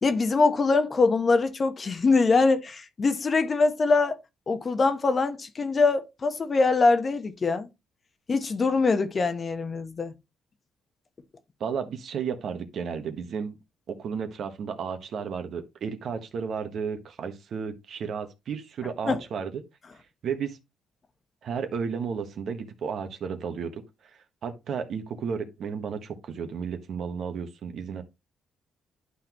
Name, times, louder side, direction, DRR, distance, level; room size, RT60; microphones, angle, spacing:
voice 1, 0.0-4.2 4.5-7.7 8.3-10.1 19.1-19.2, left 3 dB, 40° left, 1.1 m, -23 dB
voice 2, 11.6-13.5 13.9-19.6 20.2-20.6 21.4-23.8 24.4-28.0, right 6 dB, 65° right, 1.3 m, -33 dB
11.5 x 4.0 x 3.0 m
cardioid pair, 90°, 0 cm